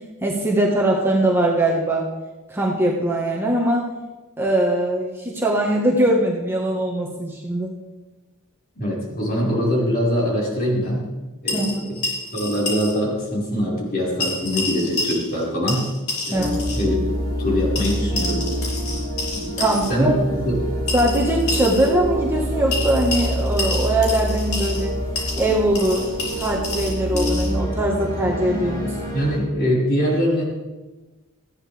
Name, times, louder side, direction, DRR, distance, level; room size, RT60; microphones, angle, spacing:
voice 1, 0.2-2.1 2.5-3.9 4.4-7.7 11.5-11.9 16.3-16.6 19.6-20.2 20.9-25.0 25.4-26.1 26.3-29.0, right 1 dB, 10° right, -3 dB, 1.6 m, -21 dB
voice 2, 8.8-11.0 11.4-12.0 12.3-15.9 16.3-18.5 19.3-19.5 19.9-20.6 29.1-30.4, equal, 45° left, -5 dB, 5.5 m, -23 dB
sound 1, 11.5-12.9 13.2-13.3 14.2-15.4 15.7-16.9 17.7-19.9 20.9-21.9 22.7-24.8 25.1-27.5, left 2 dB, 65° left, 5.7 m, -29 dB
sound 2, 16.3-29.4, equal, 20° left, 5.5 m, -26 dB
19.5 x 14.0 x 3.6 m, 1.2 s
head